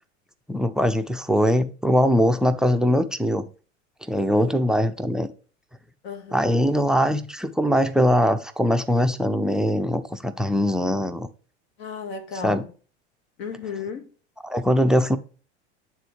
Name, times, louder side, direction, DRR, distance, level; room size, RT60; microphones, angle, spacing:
voice 1, 0.5-3.5 4.1-5.3 6.3-11.3 12.4-12.6 14.4-15.2, equal, ahead, 0.5 m, -21 dB
voice 2, 4.4-4.7 6.0-6.6 11.8-12.7 13.4-14.1, left 5 dB, 60° left, 1.6 m, -35 dB
8.9 x 3.8 x 3.1 m
hypercardioid pair, 85°, 36 cm